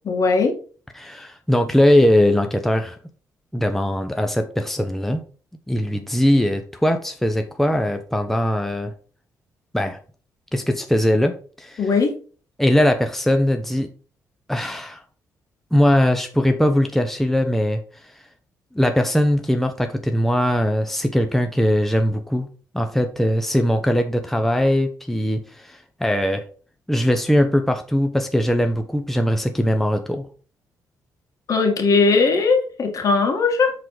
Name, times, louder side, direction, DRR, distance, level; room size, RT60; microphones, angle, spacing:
voice 1, 0.0-0.5 11.8-12.1 31.5-33.7, left 4 dB, 55° left, 4 dB, 2.1 m, -18 dB
voice 2, 1.0-3.0 3.5-5.2 5.7-8.9 9.7-10.0 10.5-11.9 12.6-13.9 14.5-15.0 15.7-17.8 18.7-22.5 22.7-26.4 26.9-30.3, equal, 5° left, 6 dB, 0.9 m, -20 dB
7.5 x 4.0 x 4.9 m, 0.40 s
cardioid pair, 70°, 7 cm